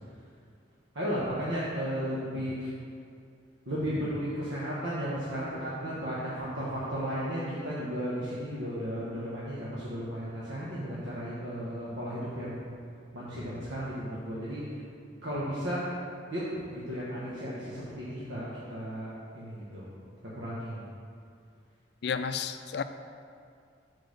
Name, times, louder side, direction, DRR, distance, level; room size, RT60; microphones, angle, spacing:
voice 1, 0.9-2.7 3.7-12.8 13.1-14.6 15.2-15.8 16.3-19.9 20.3-20.8, equal, 90° right, -9 dB, 1.4 m, -34 dB
voice 2, 22.0-22.8, left 6 dB, 60° left, 10 dB, 0.4 m, -31 dB
6.4 x 4.5 x 6.5 m, 2.3 s
head